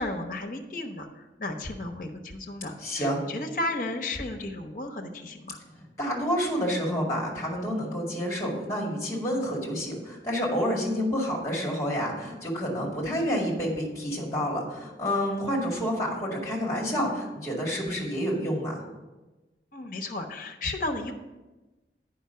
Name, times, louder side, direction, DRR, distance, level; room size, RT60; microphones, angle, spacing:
voice 1, 0.0-5.6 19.7-21.1, left 2 dB, 50° left, 4 dB, 1.0 m, -34 dB
voice 2, 2.8-3.2 5.7-18.8, equal, 20° left, -2 dB, 2.3 m, -29 dB
9.0 x 5.5 x 5.6 m, 1.1 s
head